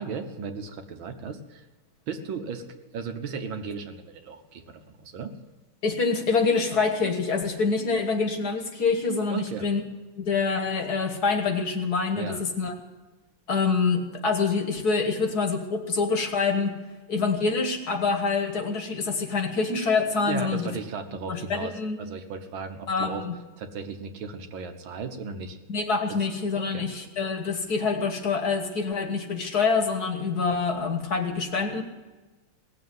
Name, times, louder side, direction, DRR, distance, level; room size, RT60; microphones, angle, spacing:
voice 1, 0.0-1.6 2.1-5.3 9.3-9.7 12.2-12.5 20.2-21.7 22.0-23.3 23.6-25.6 26.1-26.2 26.5-26.9, right 5 dB, 70° right, 6 dB, 1.9 m, -35 dB
voice 2, 5.8-9.8 10.2-12.7 13.5-16.8 17.1-20.6 21.3-22.0 22.9-23.3 25.7-31.8, left 4 dB, 50° left, 4 dB, 1.9 m, -26 dB
18.0 x 7.6 x 9.4 m, 1.2 s
omnidirectional pair, 2.3 m